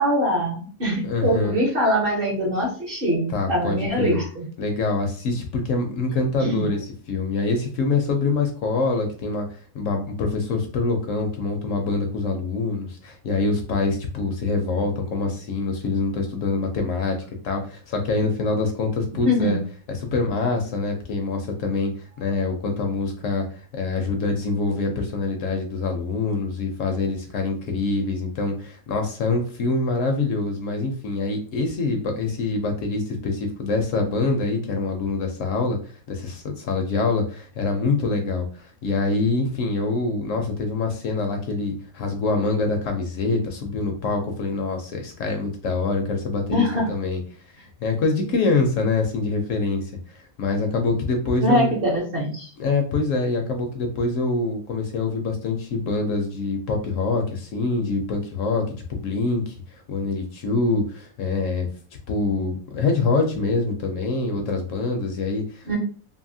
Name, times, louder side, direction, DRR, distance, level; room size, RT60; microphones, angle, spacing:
voice 1, 0.0-4.5 6.4-6.7 19.2-19.6 46.5-46.9 51.4-52.5 65.7-65.8, equal, 45° right, -2 dB, 0.9 m, -23 dB
voice 2, 1.0-1.5 3.3-4.2 4.6-17.2 17.4-19.6 19.9-35.8 36.1-47.2 47.6-51.7 52.6-58.6 58.9-61.7 62.1-65.8, left 3 dB, 70° left, 4 dB, 0.9 m, -25 dB
2.7 x 2.7 x 2.6 m, 0.41 s
omnidirectional pair, 1.5 m